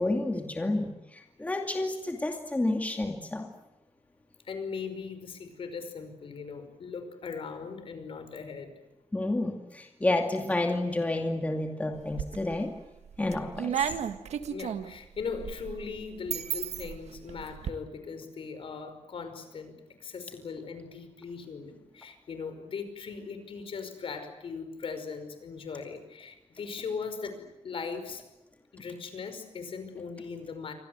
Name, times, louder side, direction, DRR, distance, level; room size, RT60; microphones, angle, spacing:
voice 1, 0.0-3.5 9.1-12.7 13.2-13.9, left 2 dB, 15° left, 2 dB, 2.5 m, -30 dB
voice 2, 4.4-8.7 14.5-28.2 28.7-30.7, left 5 dB, 55° left, 9 dB, 5.3 m, -39 dB
sound 1, 11.9-12.6 13.1-17.7, right 9 dB, 85° right, 1.7 m, -34 dB
29.5 x 25.0 x 8.0 m, 0.96 s
wide cardioid pair, 160°, 11 cm